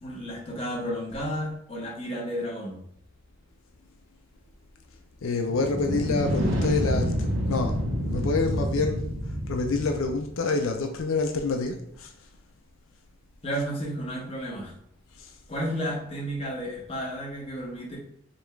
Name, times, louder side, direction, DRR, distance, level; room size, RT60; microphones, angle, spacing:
voice 1, 0.0-2.8 13.4-14.7 15.5-18.0, equal, 30° left, 1.0 m, -32 dB
voice 2, 5.2-7.8 8.1-9.1 9.5-12.1 13.5-13.6 15.2-15.3, left 3 dB, 90° left, 0.5 m, -27 dB
sound 1, 5.5-10.3, equal, 65° right, 0.7 m, -28 dB
5.1 x 2.4 x 3.2 m
head